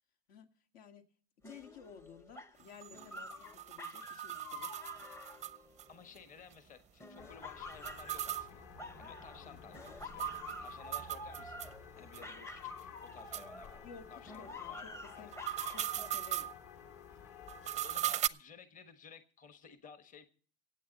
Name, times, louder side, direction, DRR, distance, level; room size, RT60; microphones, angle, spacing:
voice 1, 0.7-1.0 1.4-4.7 9.4-9.6 13.8-14.1 14.4-14.9 15.2-15.4 15.7-16.5, left 6 dB, 70° left, 2.5 m, -54 dB
sound 1, 1.4-6.4 7.0-9.5 9.7-13.9 14.3-16.1, left 3 dB, 10° left, 0.8 m, -49 dB
sound 2, 2.6-5.8 6.2-6.3 6.5-6.6 7.7-11.7 12.1-12.2 12.8-12.9 13.3-13.5 15.2-16.5 17.5-18.3, right 12 dB, 20° right, 0.5 m, -39 dB
voice 2, 5.9-8.7 8.9-10.3 10.6-11.6 12.0-13.8 14.1-15.3 17.8-20.3, left 6 dB, 25° left, 1.4 m, -55 dB
sound 3, 7.2-18.1, left 8 dB, 50° left, 2.8 m, -54 dB
26.0 x 8.9 x 4.1 m
supercardioid pair, 130°, 33 cm